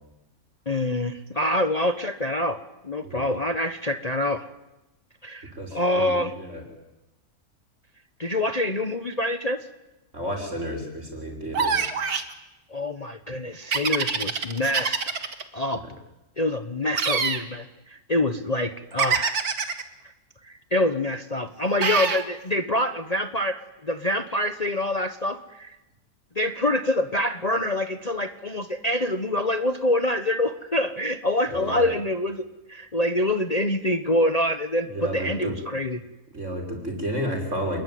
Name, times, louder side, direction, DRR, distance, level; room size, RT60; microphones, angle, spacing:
voice 1, 0.7-2.6 2.8-4.4 5.2-6.3 8.2-9.7 12.7-15.0 15.5-15.8 16.4-19.4 20.4-25.7 26.3-32.4 32.7-36.0, left 1 dB, 30° left, 9 dB, 1.1 m, -26 dB
voice 2, 5.5-6.6 10.1-11.8 15.7-15.8 31.5-31.9 34.9-35.5 36.3-37.8, equal, 50° right, 3 dB, 6.2 m, -31 dB
sound 1, 11.5-12.3 13.7-15.4 16.9-17.4 19.0-19.8 21.8-22.2, right 5 dB, 70° right, 2.4 m, -25 dB
29.0 x 21.5 x 9.4 m, 0.99 s
omnidirectional pair, 1.6 m